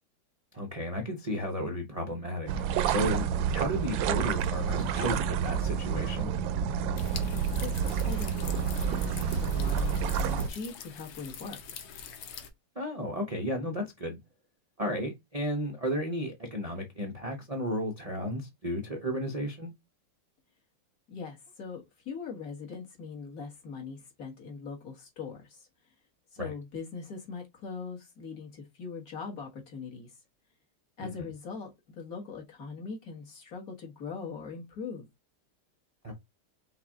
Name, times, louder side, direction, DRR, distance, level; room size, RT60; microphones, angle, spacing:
voice 1, 0.5-2.5 2.9-6.3 12.8-14.2 14.8-19.7 26.4-26.5 31.0-31.3 36.0-36.1, equal, 55° right, 0.4 m, -33 dB
sound 1, 2.5-10.5, right 7 dB, 75° right, 1.2 m, -29 dB
sound 2, 7.0-12.5, left 7 dB, 75° left, 1.7 m, -44 dB
voice 2, 7.6-11.6 21.1-25.7 26.3-30.1 31.0-31.7 32.0-35.1, left 5 dB, 45° left, 1.8 m, -41 dB
5.7 x 2.5 x 3.5 m
omnidirectional pair, 2.3 m